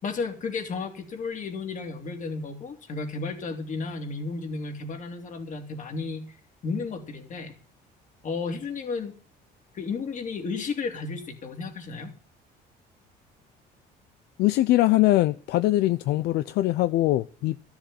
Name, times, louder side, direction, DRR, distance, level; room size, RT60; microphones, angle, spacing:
voice 1, 0.0-6.4 6.6-7.5 8.2-9.1 9.7-12.1, left 4 dB, 50° left, 3.3 m, -33 dB
voice 2, 14.4-17.6, left 16 dB, 80° left, 0.6 m, -22 dB
13.5 x 7.2 x 8.9 m
cardioid pair, 110°, 17 cm